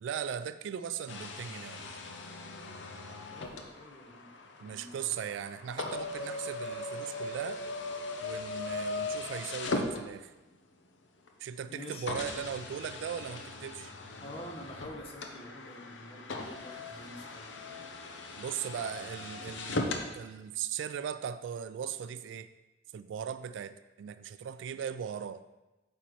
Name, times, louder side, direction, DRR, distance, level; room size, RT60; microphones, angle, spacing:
voice 1, 0.0-2.0 4.6-7.6 8.2-10.3 11.4-13.9 18.4-22.5 22.9-25.4, right 8 dB, 90° right, 13 dB, 0.3 m, -38 dB
sound 1, 1.1-10.6 11.3-11.4 12.1-20.1, left 2 dB, 85° left, 0.7 m, -39 dB
voice 2, 3.3-4.3 4.6-5.2 11.7-12.1 14.2-17.6, equal, 30° left, 1 dB, 0.9 m, -47 dB
8.3 x 5.3 x 3.1 m, 1.1 s
head